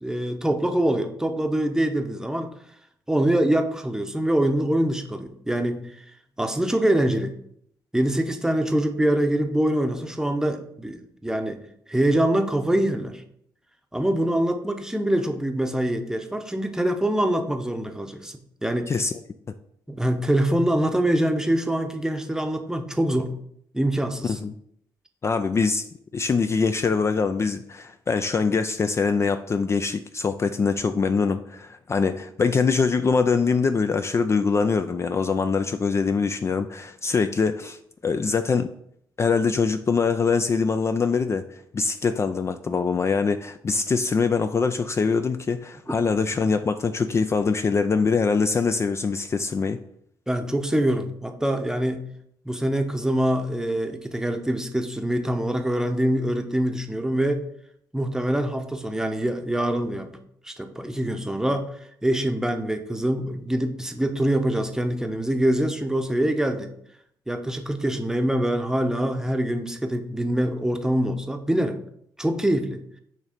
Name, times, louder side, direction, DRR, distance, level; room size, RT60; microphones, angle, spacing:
voice 1, 0.0-2.5 3.1-5.9 6.4-7.4 7.9-13.2 13.9-18.9 19.9-23.3 23.7-24.4 45.9-46.0 50.3-52.0 52.5-57.5 57.9-60.2 60.4-61.7 62.0-66.7 67.3-71.8 72.2-72.8, right 1 dB, 5° right, 6 dB, 0.8 m, -24 dB
voice 2, 25.2-25.9 26.1-38.7 39.2-49.8, left 5 dB, 35° left, 9 dB, 0.3 m, -23 dB
6.4 x 3.1 x 5.0 m, 0.71 s
cardioid pair, 80°, 8 cm